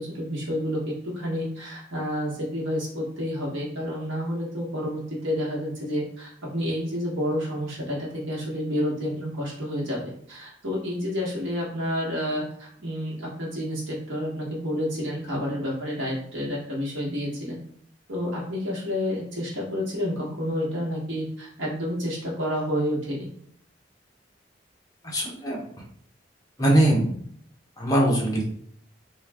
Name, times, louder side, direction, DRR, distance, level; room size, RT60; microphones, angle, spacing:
voice 1, 0.0-17.6 18.1-23.3, equal, 90° right, -4 dB, 1.2 m, -29 dB
voice 2, 25.0-25.6 26.6-27.2 27.8-28.4, right 1 dB, 20° left, -3 dB, 0.8 m, -21 dB
3.1 x 2.3 x 3.4 m, 0.64 s
head